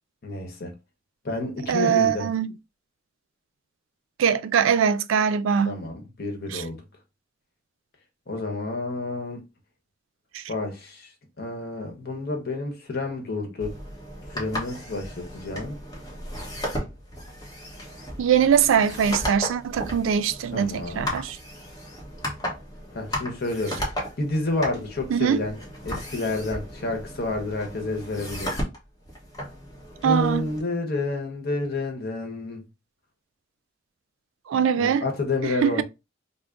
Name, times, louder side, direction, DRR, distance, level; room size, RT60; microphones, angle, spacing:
voice 1, 0.2-0.7 1.2-2.3 5.6-6.8 8.3-9.4 10.5-11.1 11.4-13.8 14.3-15.8 20.5-21.1 22.9-23.8 24.2-25.6 25.8-28.6 30.0-32.6 34.7-35.8, left 2 dB, 55° left, 1.0 m, -29 dB
voice 2, 1.7-2.5 4.2-5.8 6.5-6.6 10.3-10.4 18.2-21.4 25.1-25.4 30.0-30.5 34.5-35.0 35.4-35.8, right 7 dB, 85° right, 0.3 m, -22 dB
sound 1, 13.6-30.6, equal, 20° left, 1.1 m, -35 dB
3.4 x 2.0 x 3.8 m
head